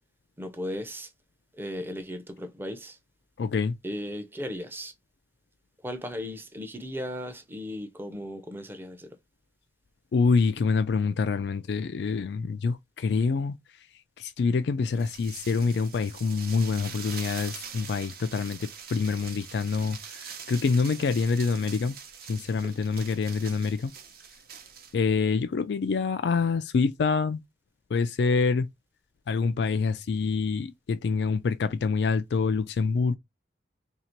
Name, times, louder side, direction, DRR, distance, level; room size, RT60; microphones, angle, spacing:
voice 1, 0.4-1.1 1.6-3.0 3.8-4.9 5.8-9.2, equal, 10° right, 0.6 m, -36 dB
voice 2, 3.4-3.8 10.1-13.9 14.2-22.0 22.3-23.9 24.9-27.4 27.9-28.7 29.3-33.1, left 4 dB, 65° left, 0.3 m, -26 dB
sound 1, 14.8-24.9, right 7 dB, 55° right, 0.8 m, -43 dB
2.8 x 2.8 x 4.4 m
head